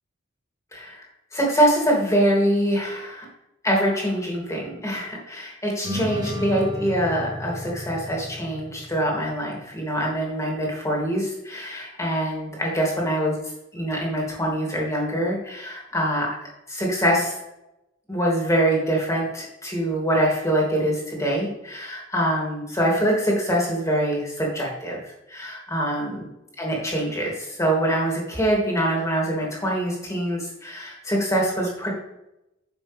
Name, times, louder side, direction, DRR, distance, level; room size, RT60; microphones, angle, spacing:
voice 1, 0.7-1.0 1.3-3.3 3.6-13.4 13.7-16.3 16.7-17.4 18.1-26.3 26.6-31.9, right 1 dB, 15° left, -2 dB, 3.1 m, -24 dB
sound 1, 5.8-9.5, left 1 dB, 20° right, 1.4 m, -33 dB
11.0 x 7.1 x 3.6 m, 0.89 s
head